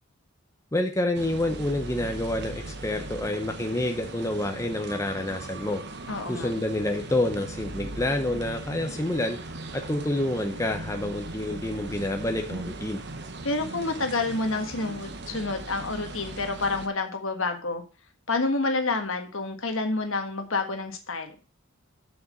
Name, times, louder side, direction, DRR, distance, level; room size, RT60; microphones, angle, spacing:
voice 1, 0.7-5.8 6.3-9.4 9.7-13.0, left 1 dB, 15° left, 4 dB, 0.8 m, -28 dB
sound 1, 1.1-16.9, right 2 dB, 55° right, 1.1 m, -39 dB
voice 2, 6.1-6.5 13.4-17.8 18.3-21.3, left 3 dB, 65° left, 6 dB, 1.6 m, -28 dB
7.3 x 7.0 x 5.2 m, 0.34 s
head